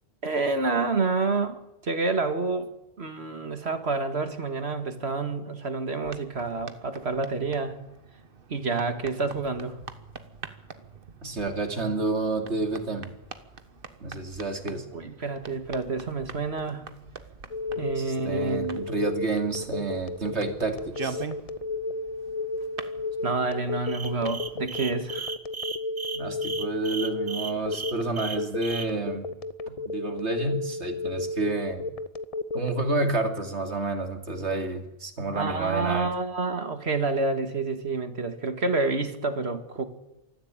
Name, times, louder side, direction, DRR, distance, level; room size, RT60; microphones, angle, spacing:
voice 1, 0.2-2.7 3.0-7.8 8.5-9.8 14.9-16.9 17.8-18.9 23.2-25.3 35.3-39.8, right 3 dB, 70° right, 8 dB, 2.2 m, -28 dB
sound 1, 6.0-25.2, right 5 dB, 55° right, 1.5 m, -44 dB
voice 2, 11.2-13.1 14.0-14.8 18.0-21.2 26.1-29.3 29.9-31.9 32.5-36.1, right 3 dB, 90° right, 5 dB, 3.0 m, -29 dB
Telephone, 17.5-32.8, left 3 dB, 35° left, 0.9 m, -32 dB
sound 2, 23.9-28.9, right 4 dB, 25° right, 1.2 m, -35 dB
20.5 x 14.0 x 9.0 m, 0.92 s
omnidirectional pair, 1.1 m